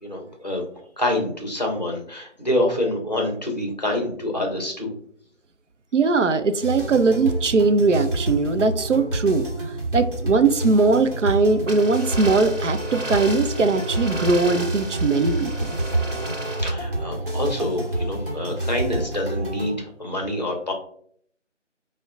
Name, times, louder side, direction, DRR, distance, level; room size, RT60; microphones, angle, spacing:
voice 1, 0.0-0.6 1.0-4.9 16.6-20.7, left 1 dB, 35° left, 1 dB, 0.7 m, -26 dB
voice 2, 5.9-9.5 9.9-15.7, right 4 dB, 75° right, 9 dB, 0.5 m, -20 dB
sound 1, 6.6-19.7, right 1 dB, 45° right, 1.0 m, -28 dB
sound 2, 11.7-16.7, right 1 dB, 90° right, 0.9 m, -34 dB
5.1 x 2.1 x 2.4 m, 0.62 s
figure-of-eight pair, 165°, 37 cm